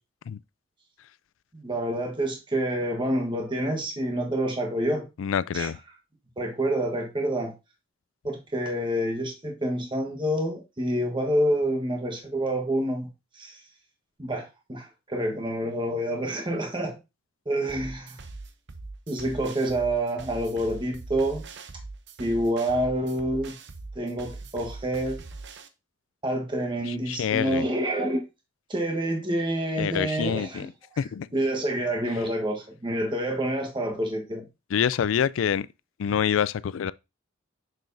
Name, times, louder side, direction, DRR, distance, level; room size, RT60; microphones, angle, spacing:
voice 1, 1.5-5.1 5.5-5.7 6.4-7.5 8.2-13.1 13.4-13.6 14.2-17.0 17.5-18.2 19.1-21.4 22.2-23.5 23.9-25.2 26.2-28.2 28.7-30.7 31.3-34.5, right 1 dB, 25° right, 1.3 m, -27 dB
voice 2, 5.2-5.8 26.9-27.7 29.8-30.7 31.0-31.3 34.7-35.7 36.0-36.9, left 8 dB, 75° left, 0.4 m, -26 dB
sound 1, 17.7-25.7, right 3 dB, 60° right, 0.7 m, -42 dB
6.7 x 6.3 x 2.7 m
head